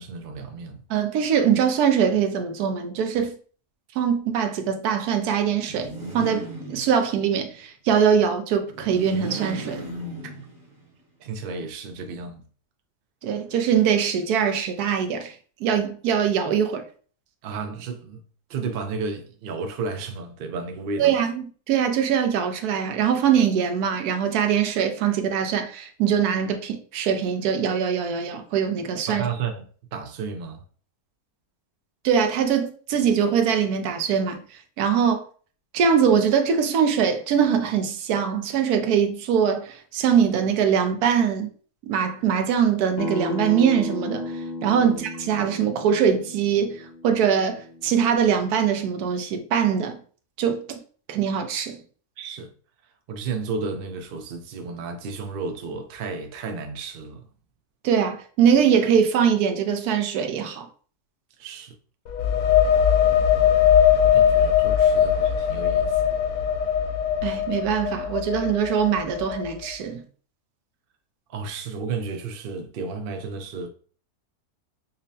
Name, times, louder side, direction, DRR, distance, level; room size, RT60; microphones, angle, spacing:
voice 1, 0.0-0.8 11.2-12.4 17.4-18.2 18.5-21.2 29.1-30.6 44.8-44.9 52.2-52.5 53.1-57.3 61.4-61.7 64.0-66.2 71.3-73.7, right 4 dB, 60° right, 0.5 m, -32 dB
voice 2, 0.9-3.3 4.0-9.9 13.2-15.3 15.6-16.8 21.0-29.3 32.0-34.4 34.8-35.2 35.7-41.5 41.8-50.0 50.4-50.6 51.1-51.8 57.8-60.7 67.2-70.0, right 7 dB, 80° right, 1.1 m, -22 dB
sound 1, 5.6-7.3 8.7-10.8, right 1 dB, 40° right, 0.9 m, -36 dB
Acoustic guitar, 43.0-48.2, left 2 dB, 65° left, 0.7 m, -34 dB
sound 2, 62.1-69.6, left 9 dB, 85° left, 1.1 m, -20 dB
5.4 x 2.1 x 2.7 m
omnidirectional pair, 1.6 m